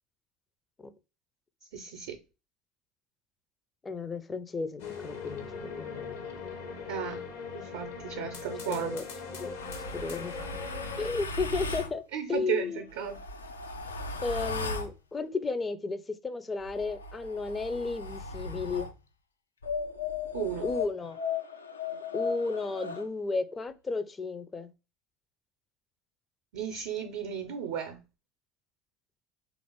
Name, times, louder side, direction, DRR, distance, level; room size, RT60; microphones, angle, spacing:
voice 1, 1.7-2.1 6.9-7.2 7.5-9.0 12.1-13.2 20.3-20.7 26.5-28.0, right 9 dB, 65° right, 0.5 m, -34 dB
voice 2, 3.8-5.5 5.8-6.2 8.7-9.1 9.4-9.6 9.9-10.6 11.0-12.0 12.3-12.8 14.2-18.9 20.6-21.2 22.1-24.7, left 4 dB, 20° left, 0.4 m, -33 dB
sound 1, 4.8-11.1, left 5 dB, 65° left, 0.8 m, -40 dB
sound 2, 9.6-11.9 12.9-14.9 16.6-18.9 19.6-23.1, left 4 dB, 80° left, 0.4 m, -36 dB
3.4 x 2.4 x 3.8 m
figure-of-eight pair, 70°, 0 cm